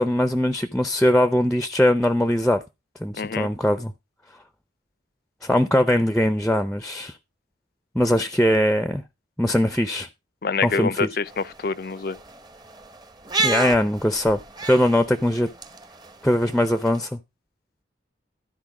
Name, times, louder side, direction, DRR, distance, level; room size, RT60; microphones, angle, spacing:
voice 1, 0.0-2.6 3.0-3.9 5.4-7.2 7.9-9.0 9.4-10.1 10.6-11.1 13.4-15.5 16.2-17.2, left 1 dB, 5° left, 0.5 m, -21 dB
voice 2, 3.2-3.5 10.4-12.2, left 5 dB, 50° left, 0.5 m, -26 dB
sound 1, 11.3-17.0, right 3 dB, 20° right, 0.8 m, -32 dB
13.0 x 4.5 x 5.9 m
head